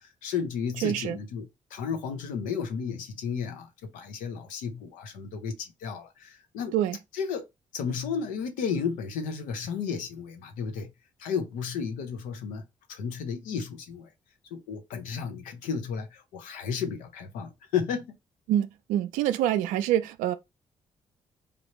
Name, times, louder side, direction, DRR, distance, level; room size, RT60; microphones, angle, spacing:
voice 1, 0.0-6.7 7.1-7.5 7.7-10.9 11.2-12.6 12.9-14.1 14.5-18.2, left 6 dB, 90° left, 0.7 m, -33 dB
voice 2, 0.8-1.2 6.7-7.0 18.5-20.3, right 12 dB, 85° right, 0.4 m, -26 dB
3.3 x 2.6 x 3.0 m
supercardioid pair, 50°, 13 cm